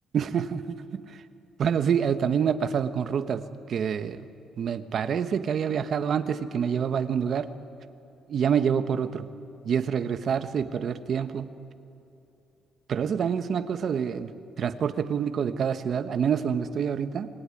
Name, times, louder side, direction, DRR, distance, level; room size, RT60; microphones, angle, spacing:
voice 1, 0.1-1.2 1.6-3.4 3.7-4.3 4.6-7.5 8.3-9.3 9.6-11.5 12.9-14.3 14.6-17.3, right 7 dB, 45° right, 10 dB, 1.2 m, -27 dB
27.0 x 20.5 x 10.0 m, 2.8 s
cardioid pair, 155°, 0 cm